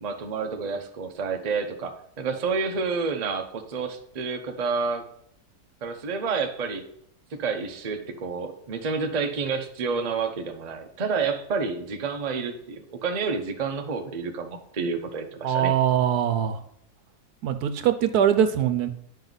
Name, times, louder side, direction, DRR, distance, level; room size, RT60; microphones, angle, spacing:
voice 1, 0.0-5.0 5.8-6.9 7.3-15.7, right 5 dB, 35° right, 5 dB, 0.6 m, -29 dB
voice 2, 15.4-16.6 17.4-18.9, right 9 dB, 75° right, 9 dB, 1.2 m, -22 dB
10.5 x 5.3 x 4.0 m, 0.71 s
omnidirectional pair, 1.7 m